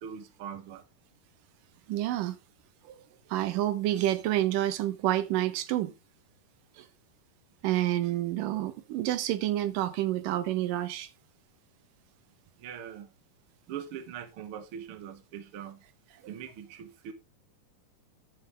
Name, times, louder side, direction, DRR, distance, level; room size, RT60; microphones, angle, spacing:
voice 1, 0.0-0.9 12.6-13.1 13.7-15.8 16.3-17.1, right 8 dB, 55° right, 1.8 m, -41 dB
voice 2, 1.9-2.4 3.3-5.9 6.8-6.9 7.6-11.1, right 14 dB, 85° right, 2.6 m, -28 dB
11.5 x 7.6 x 3.5 m
omnidirectional pair, 3.7 m